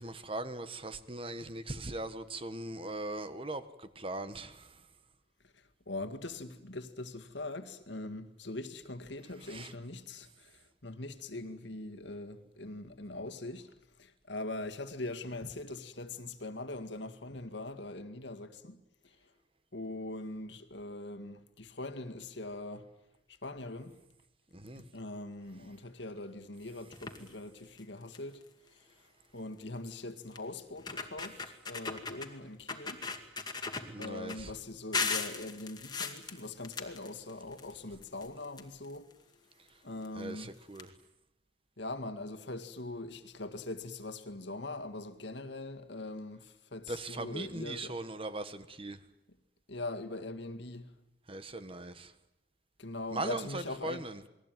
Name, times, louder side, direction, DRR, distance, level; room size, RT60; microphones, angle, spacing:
voice 1, 0.0-4.8 9.4-9.7 24.5-24.8 31.2-31.3 33.9-34.5 40.1-40.9 46.9-49.0 51.3-52.1 53.1-54.2, right 2 dB, 25° right, 1.4 m, -40 dB
voice 2, 5.9-13.7 14.0-18.8 19.7-22.9 23.4-24.0 24.8-28.4 29.3-31.4 31.7-33.0 34.0-39.1 39.8-40.5 41.8-48.0 49.7-50.9 52.8-54.1, left 2 dB, 60° left, 2.0 m, -42 dB
sound 1, 26.9-27.3 27.8-27.9 28.1-28.4 29.6-29.7 30.3-30.4 30.8-32.3 32.7-34.4 34.9-37.7 38.0-39.1 40.0-40.1 40.4-40.5 40.7-40.8, left 4 dB, 20° left, 2.1 m, -37 dB
28.5 x 21.5 x 9.2 m
head